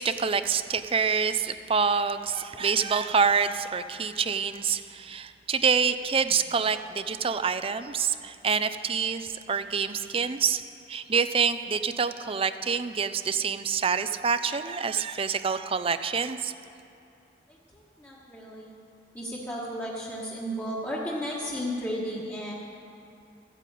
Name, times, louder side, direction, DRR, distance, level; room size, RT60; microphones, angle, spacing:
voice 1, 0.0-10.6 10.9-16.5, right 6 dB, 35° right, 11 dB, 0.5 m, -26 dB
voice 2, 17.7-18.7 19.1-22.5, equal, 15° left, -6 dB, 1.5 m, -34 dB
14.0 x 9.1 x 8.3 m, 2.7 s
head